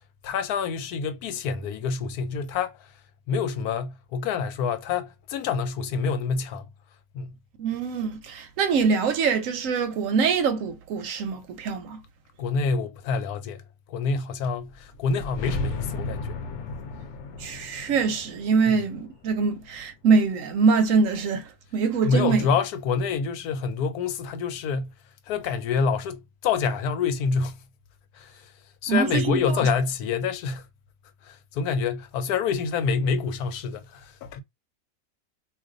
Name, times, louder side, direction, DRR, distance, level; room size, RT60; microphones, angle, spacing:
voice 1, 0.2-2.9 3.3-6.7 7.1-7.4 12.4-13.6 13.9-16.4 22.0-24.9 25.3-27.6 28.1-28.5 28.8-30.7 31.2-34.4, left 5 dB, 85° left, 1.1 m, -27 dB
voice 2, 7.6-12.0 17.4-22.5 28.9-29.6, right 5 dB, 70° right, 0.9 m, -24 dB
sound 1, 14.7-19.8, left 3 dB, 65° left, 0.8 m, -35 dB
2.5 x 2.3 x 3.7 m
omnidirectional pair, 1.6 m